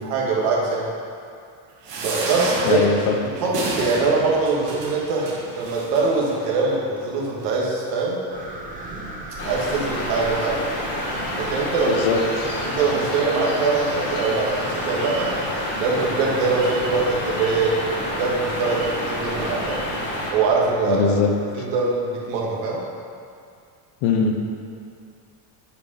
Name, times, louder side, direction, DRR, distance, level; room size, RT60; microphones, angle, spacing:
voice 1, 0.0-0.9 2.0-2.8 3.4-8.2 9.4-10.6 11.3-12.0 12.6-15.3 15.7-17.7 18.2-19.8 20.3-21.0 21.6-22.8, right 4 dB, 85° right, -3 dB, 2.0 m, -23 dB
sound 1, 1.8-6.4 7.0-7.1 7.4-7.5, right 2 dB, 50° right, 1.5 m, -30 dB
voice 2, 2.6-3.2 11.8-12.5 20.8-21.3 24.0-24.4, left 5 dB, 55° left, 3 dB, 0.9 m, -21 dB
sound 2, 8.3-21.9, right 1 dB, 15° right, 0.6 m, -36 dB
sound 3, 9.4-20.3, left 1 dB, 25° left, 1.4 m, -29 dB
8.6 x 4.8 x 5.6 m, 2.4 s
cardioid pair, 180°, 49 cm